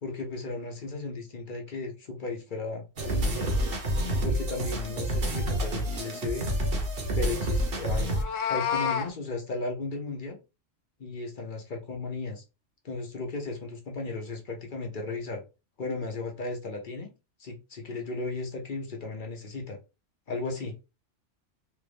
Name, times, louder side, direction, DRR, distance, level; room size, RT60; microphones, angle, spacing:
voice 1, 0.0-3.5 4.1-6.5 7.1-8.1 8.4-10.4 11.0-12.4 12.8-15.4 15.8-17.1 17.4-19.8 20.3-20.7, left 3 dB, 45° left, 0.8 m, -35 dB
sound 1, 3.0-8.2, right 1 dB, 50° right, 1.0 m, -28 dB
Meow, 8.0-9.1, left 8 dB, 80° left, 1.1 m, -29 dB
3.3 x 2.5 x 3.3 m
omnidirectional pair, 1.3 m